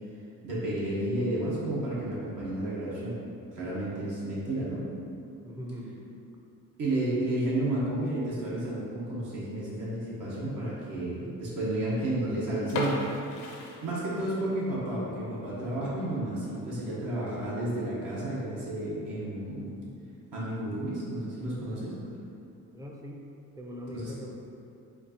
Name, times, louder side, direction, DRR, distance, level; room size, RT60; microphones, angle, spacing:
voice 1, 0.4-3.2 3.5-4.8 6.8-13.0 13.8-19.9 20.3-21.9 23.9-24.1, right 1 dB, 70° right, -8 dB, 1.1 m, -31 dB
voice 2, 5.4-6.0 22.7-24.4, equal, 10° right, -1 dB, 0.4 m, -41 dB
sound 1, 12.7-14.5 14.9-15.0 15.5-15.7 16.1-16.2 16.4-16.5 17.3-17.6, left 2 dB, 85° left, 0.6 m, -35 dB
4.4 x 2.4 x 2.7 m, 2.7 s
cardioid pair, 90°, 33 cm